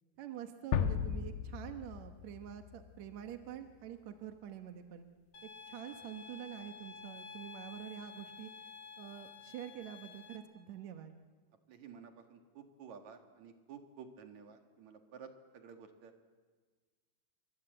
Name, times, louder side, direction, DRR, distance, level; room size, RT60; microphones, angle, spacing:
voice 1, 0.2-5.1 5.4-8.5 9.0-11.1, right 10 dB, 70° right, 6 dB, 1.7 m, -46 dB
sound 1, 0.7-3.6, left 8 dB, 85° left, 3.3 m, -36 dB
sound 2, 5.3-10.4, left 5 dB, 45° left, 2.7 m, -51 dB
voice 2, 11.7-16.1, right 6 dB, 55° right, 5 dB, 2.7 m, -53 dB
27.5 x 24.0 x 7.9 m, 1.5 s
omnidirectional pair, 4.7 m